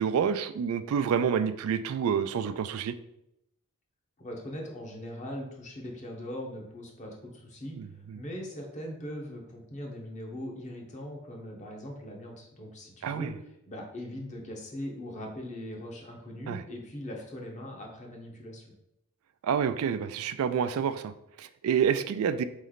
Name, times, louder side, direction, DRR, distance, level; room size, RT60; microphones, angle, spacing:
voice 1, 0.0-2.9 7.8-8.2 13.0-13.3 16.5-16.6 19.4-22.4, right 7 dB, 70° right, 13 dB, 0.3 m, -28 dB
voice 2, 4.2-13.3 13.7-18.7, left 1 dB, 35° left, 0 dB, 0.9 m, -40 dB
4.1 x 3.2 x 3.9 m, 0.81 s
head